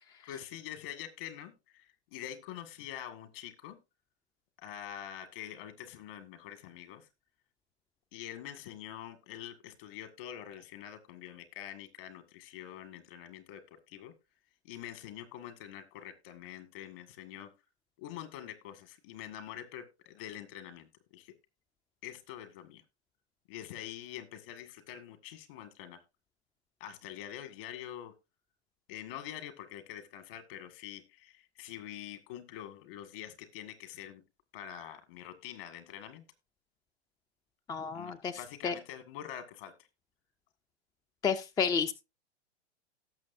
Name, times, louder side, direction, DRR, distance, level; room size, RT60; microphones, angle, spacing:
voice 1, 0.3-3.8 4.6-7.1 8.1-14.1 14.6-17.5 18.0-21.3 22.0-22.8 23.5-26.0 26.8-28.1 28.9-34.2 34.5-36.3 37.9-39.9, left 11 dB, 55° left, 10 dB, 1.9 m, -45 dB
voice 2, 37.7-38.8 41.2-41.9, left 6 dB, 10° left, 10 dB, 0.4 m, -31 dB
17.5 x 6.6 x 2.6 m, 0.26 s
hypercardioid pair, 115°, 33 cm